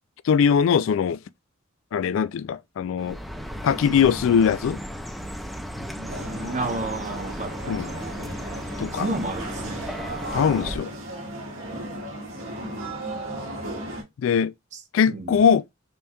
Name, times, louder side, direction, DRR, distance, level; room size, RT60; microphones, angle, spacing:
voice 1, 0.2-1.2 1.9-3.2 3.6-4.8 7.7-7.9 8.8-9.1 10.3-10.9 14.2-14.5 14.9-15.6, left 7 dB, 65° left, 0.3 m, -21 dB
Chirp tweet, 3.0-10.8, equal, ahead, 0.6 m, -35 dB
voice 2, 5.8-8.0 8.9-9.9 11.6-11.8 15.1-15.4, right 2 dB, 35° right, 0.8 m, -32 dB
sound 1, 6.1-14.0, right 1 dB, 85° right, 1.6 m, -35 dB
5.3 x 2.3 x 2.8 m
head